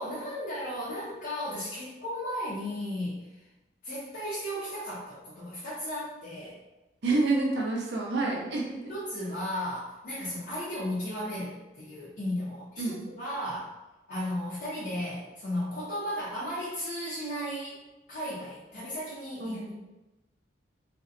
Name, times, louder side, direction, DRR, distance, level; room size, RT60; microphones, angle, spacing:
voice 1, 0.0-3.5 3.8-6.6 8.9-13.8 14.1-17.8 18.1-19.7, equal, 55° left, -9 dB, 0.7 m, -35 dB
voice 2, 7.0-8.8 12.8-13.0 19.4-19.7, right 3 dB, 65° right, -2 dB, 0.6 m, -28 dB
2.6 x 2.1 x 2.4 m, 1.0 s
head